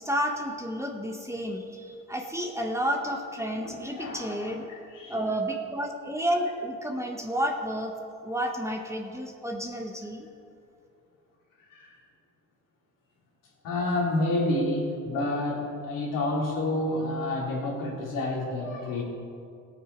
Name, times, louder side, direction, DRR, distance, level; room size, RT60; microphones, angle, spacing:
voice 1, 0.0-4.7 5.1-7.9 8.2-10.3, equal, 10° right, 2 dB, 1.3 m, -31 dB
voice 2, 3.5-5.2 11.7-11.9 13.6-19.0, left 2 dB, 70° left, -3 dB, 3.4 m, -29 dB
16.5 x 9.0 x 4.7 m, 2.5 s
supercardioid pair, 85°, 33 cm